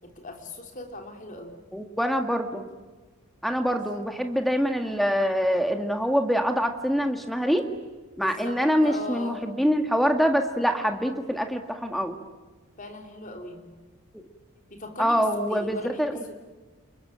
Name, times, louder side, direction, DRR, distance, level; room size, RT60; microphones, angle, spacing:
voice 1, 0.0-1.6 3.6-4.0 8.2-9.5 12.8-13.7 14.7-16.3, left 1 dB, 35° left, 3 dB, 3.7 m, -39 dB
voice 2, 1.7-2.7 3.4-7.6 8.2-12.2 15.0-16.2, equal, ahead, 5 dB, 2.0 m, -25 dB
30.0 x 22.0 x 9.0 m, 1.3 s
head